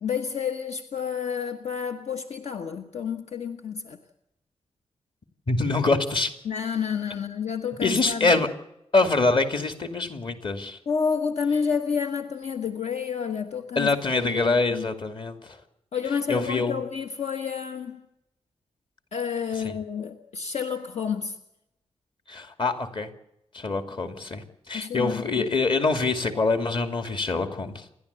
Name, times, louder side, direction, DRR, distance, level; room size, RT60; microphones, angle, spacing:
voice 1, 0.0-4.0 6.4-8.3 10.9-13.9 14.2-14.9 15.9-18.0 19.1-21.3 24.7-25.4, left 6 dB, 75° left, 1.4 m, -30 dB
voice 2, 5.5-6.3 7.8-8.5 8.9-10.8 13.8-15.6 16.1-16.8 19.5-19.7 22.3-23.1 23.5-27.9, left 3 dB, 45° left, 2.6 m, -25 dB
28.5 x 11.5 x 8.3 m
wide cardioid pair, 125°, 11 cm